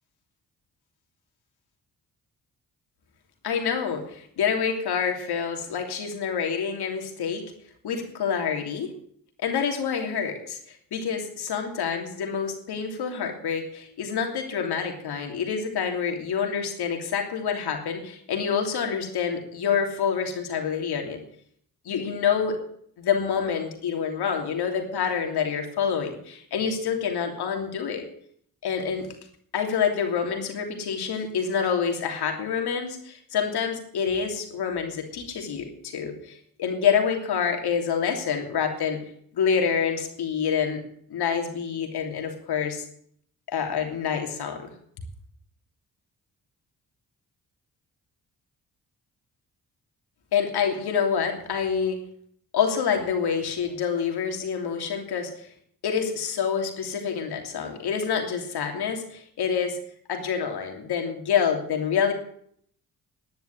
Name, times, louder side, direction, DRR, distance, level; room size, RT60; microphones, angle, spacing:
voice 1, 3.4-7.5 7.8-8.9 9.4-21.2 21.8-22.6 23.0-28.1 28.6-29.1 29.5-39.0 39.3-40.8 41.1-42.8 43.5-44.7 50.3-52.0 52.5-55.5 55.8-59.8 60.1-62.1, left 7 dB, 80° left, 3 dB, 3.1 m, -27 dB
11.0 x 10.5 x 9.4 m, 0.65 s
supercardioid pair, 55°, 38 cm